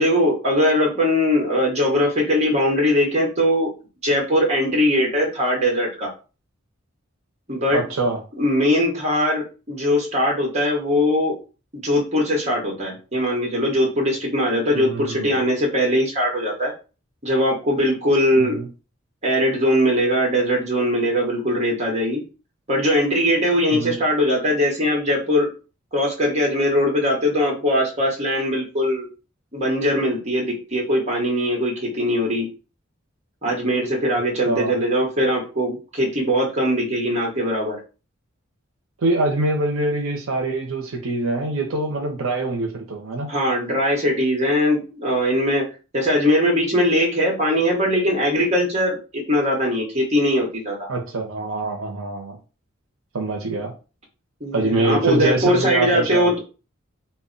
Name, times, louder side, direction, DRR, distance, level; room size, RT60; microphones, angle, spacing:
voice 1, 0.0-3.7 4.0-6.1 7.5-7.8 8.4-11.4 11.7-16.7 17.2-18.6 19.2-22.2 22.7-25.5 25.9-29.1 29.5-32.5 33.4-37.8 43.3-45.7 45.9-50.9 54.4-56.4, equal, 30° right, -1 dB, 0.9 m, -21 dB
voice 2, 7.7-8.2 14.7-15.3 18.3-18.7 23.7-24.0 34.5-34.8 39.0-43.3 50.9-52.4 53.1-53.7 54.5-56.3, right 2 dB, 75° right, 2 dB, 0.5 m, -24 dB
2.1 x 2.1 x 3.7 m, 0.34 s
head